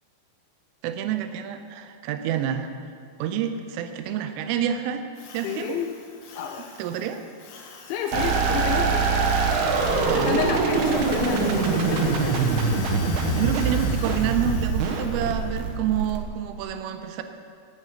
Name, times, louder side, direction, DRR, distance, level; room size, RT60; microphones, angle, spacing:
voice 1, 0.8-2.7 3.2-5.0 5.3-5.8 6.8-7.2 10.0-10.5 13.3-17.2, right 9 dB, 85° right, 7 dB, 3.3 m, -28 dB
Drill, 5.2-15.6, left 4 dB, 65° left, 2.5 m, -42 dB
voice 2, 5.4-6.0 6.4-6.7 7.9-9.3 9.8-12.5, left 8 dB, 85° left, 5 dB, 2.8 m, -30 dB
sound 1, 8.1-16.6, right 4 dB, 70° right, 2.7 m, -23 dB
9.5 x 8.5 x 8.8 m, 2.2 s
omnidirectional pair, 5.8 m